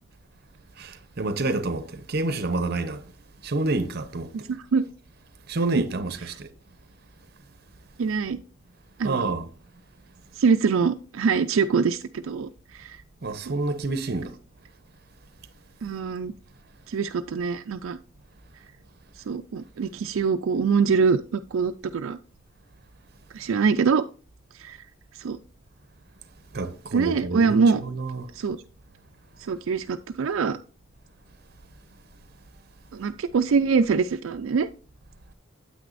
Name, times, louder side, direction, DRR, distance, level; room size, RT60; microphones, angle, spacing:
voice 1, 0.8-3.0 3.4-4.3 5.5-6.5 9.0-9.5 13.2-14.3 26.5-28.3, right 2 dB, 50° right, 0.7 m, -28 dB
voice 2, 8.0-8.4 9.0-9.3 10.4-13.0 13.5-13.6 15.8-16.3 16.9-18.0 19.3-22.2 23.3-24.0 24.6-24.8 25.2-25.4 26.9-27.8 28.3-28.6 29.4-30.6 32.9-34.7, right 5 dB, 75° right, 0.4 m, -24 dB
9.2 x 8.4 x 2.5 m
head